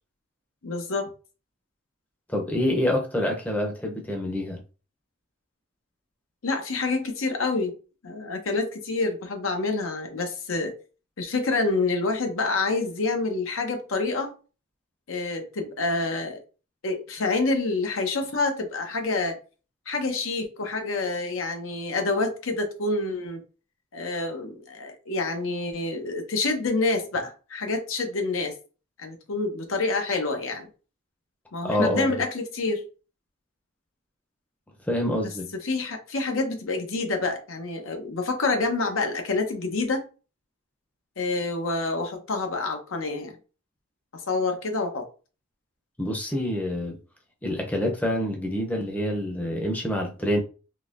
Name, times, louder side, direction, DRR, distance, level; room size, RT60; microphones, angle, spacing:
voice 1, 0.6-1.1 6.4-7.7 8.0-10.7 11.2-14.3 15.1-16.4 16.8-19.4 19.9-23.4 23.9-28.6 29.0-30.7 31.5-32.8 35.2-35.3 35.6-40.0 41.2-43.4 44.1-45.0, left 3 dB, 85° left, 0.8 m, -27 dB
voice 2, 2.3-4.6 31.6-32.1 34.9-35.5 46.0-47.0 47.4-50.4, left 1 dB, 10° left, 0.6 m, -26 dB
3.8 x 2.7 x 2.5 m
head